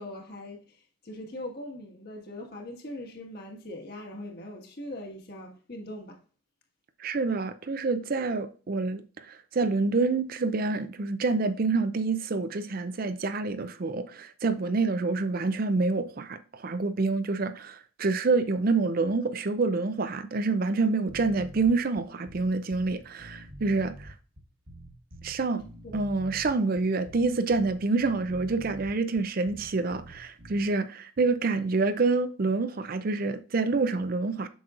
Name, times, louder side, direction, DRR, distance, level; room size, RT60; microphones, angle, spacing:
voice 1, 0.0-6.2, left 1 dB, 45° left, 1.6 m, -41 dB
voice 2, 7.0-24.1 25.2-25.6 25.9-34.5, right 3 dB, 40° right, 0.4 m, -27 dB
sound 1, 21.1-30.7, right 1 dB, 65° right, 1.6 m, -46 dB
7.8 x 6.2 x 2.5 m
head